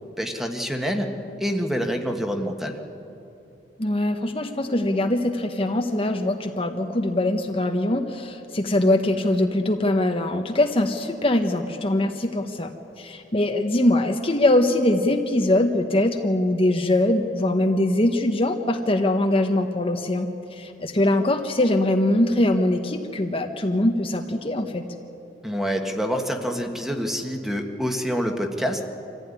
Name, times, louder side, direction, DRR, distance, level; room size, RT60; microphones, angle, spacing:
voice 1, 0.2-1.1 1.4-2.8 25.4-28.8, equal, ahead, 3 dB, 1.6 m, -26 dB
voice 2, 3.8-12.7 13.0-24.8, left 1 dB, 35° left, 4 dB, 1.1 m, -22 dB
25.5 x 15.5 x 9.9 m, 2.8 s
head